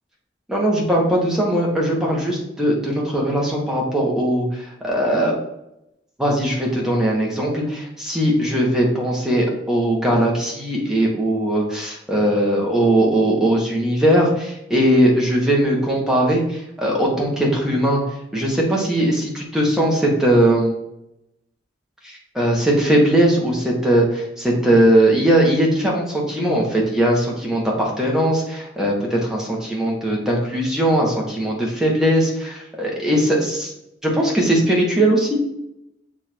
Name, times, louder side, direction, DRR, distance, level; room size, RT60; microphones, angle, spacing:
voice 1, 0.5-5.3 6.2-18.0 18.3-20.7 22.0-33.7 34.0-35.3, right 1 dB, 5° right, -3 dB, 1.5 m, -19 dB
7.3 x 3.0 x 4.5 m, 0.83 s
head